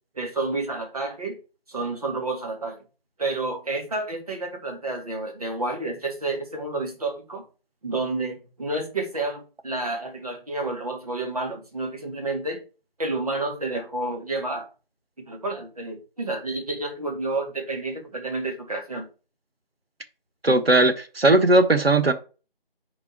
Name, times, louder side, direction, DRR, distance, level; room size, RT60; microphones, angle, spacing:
voice 1, 0.2-1.4 1.7-2.8 3.2-7.4 7.8-12.6 13.0-14.7 15.2-19.1, right 2 dB, 40° right, 1.8 m, -30 dB
voice 2, 20.4-22.1, right 2 dB, 80° right, 1.4 m, -18 dB
4.7 x 4.7 x 6.0 m
figure-of-eight pair, 170°, 29 cm